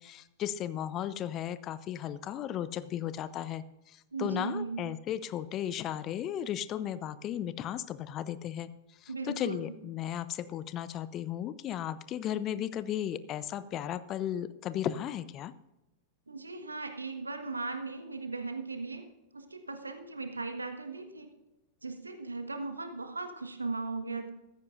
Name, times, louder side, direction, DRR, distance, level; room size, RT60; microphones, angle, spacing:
voice 1, 0.0-15.5, left 10 dB, 35° left, 16 dB, 0.6 m, -35 dB
voice 2, 4.1-4.8 9.1-9.7 16.3-19.0 19.3-21.3 21.8-24.3, right 3 dB, 85° right, 7 dB, 1.5 m, -37 dB
15.0 x 14.0 x 2.6 m, 0.97 s
figure-of-eight pair, 95°, 0 cm